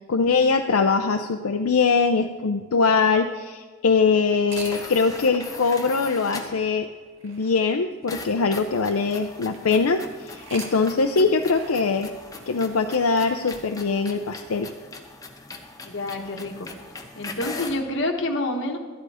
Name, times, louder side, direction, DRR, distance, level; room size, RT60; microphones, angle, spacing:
voice 1, 0.1-6.9 7.2-12.1 12.5-14.7, left 4 dB, 75° left, 6 dB, 0.6 m, -22 dB
sound 1, 4.4-9.7 10.2-14.3, right 4 dB, 60° right, 1.7 m, -46 dB
sound 2, 4.5-6.7 8.1-17.9, left 3 dB, 15° left, 0.9 m, -40 dB
voice 2, 15.9-16.7 17.2-18.8, left 1 dB, 55° left, 2 dB, 1.4 m, -28 dB
13.0 x 11.0 x 4.9 m, 1.4 s
head